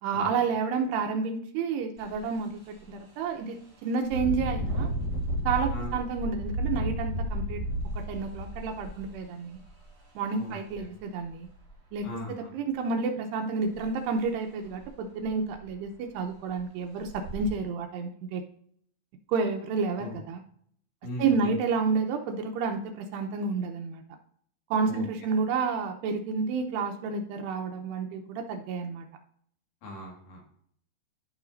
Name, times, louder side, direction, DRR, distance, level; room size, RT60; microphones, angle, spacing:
voice 1, 0.0-4.9 5.5-7.6 7.9-9.6 10.2-11.5 11.9-18.4 19.3-20.4 21.2-24.0 24.7-29.0, right 5 dB, 80° right, 5 dB, 2.7 m, -30 dB
Engine, 2.0-2.2 2.7-2.8 4.0-9.8 10.7-10.8 11.2-12.0 13.8-13.9 14.3-14.4 14.8-14.9 15.2-15.7 16.3-16.4 17.0-17.5, equal, 25° right, 3.4 m, -32 dB
voice 2, 10.4-10.9 12.0-12.5 20.0-20.2 21.0-21.5 24.9-25.0 29.8-30.5, left 1 dB, 55° left, -1 dB, 3.0 m, -39 dB
14.5 x 5.8 x 2.6 m, 0.63 s
omnidirectional pair, 5.1 m